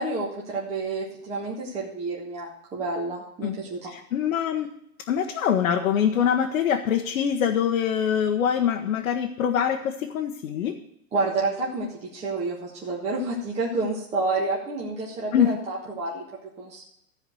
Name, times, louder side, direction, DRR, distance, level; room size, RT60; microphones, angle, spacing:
voice 1, 0.0-3.9 11.1-16.2 16.6-16.8, right 3 dB, 15° right, -4 dB, 1.5 m, -29 dB
voice 2, 3.9-4.7 5.1-10.8 15.3-15.6, left 8 dB, 60° left, 2 dB, 1.2 m, -24 dB
14.0 x 4.9 x 7.7 m, 0.77 s
hypercardioid pair, 155°, 46 cm